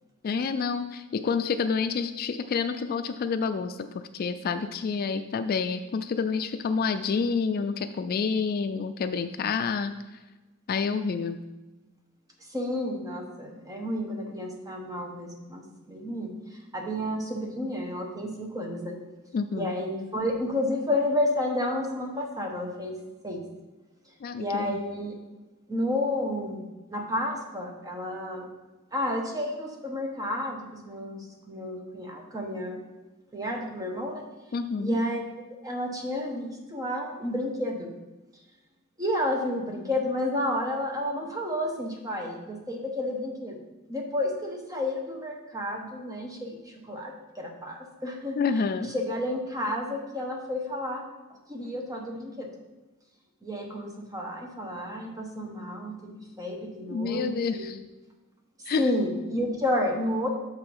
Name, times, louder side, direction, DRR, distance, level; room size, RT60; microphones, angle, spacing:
voice 1, 0.2-9.9 10.7-11.4 19.3-19.7 24.2-24.8 34.5-35.0 48.4-48.9 56.9-57.8 58.7-58.9, left 5 dB, 45° left, 9 dB, 0.3 m, -28 dB
voice 2, 12.5-16.3 16.7-19.0 19.5-23.0 23.2-23.4 24.4-25.1 25.7-28.5 28.9-32.8 33.3-34.2 34.8-35.2 35.6-37.9 39.0-43.6 43.9-46.6 46.8-48.4 48.8-51.0 51.5-52.5 53.4-57.7 58.8-60.3, left 1 dB, 15° right, 1 dB, 1.1 m, -31 dB
6.5 x 4.9 x 5.4 m, 1.1 s
head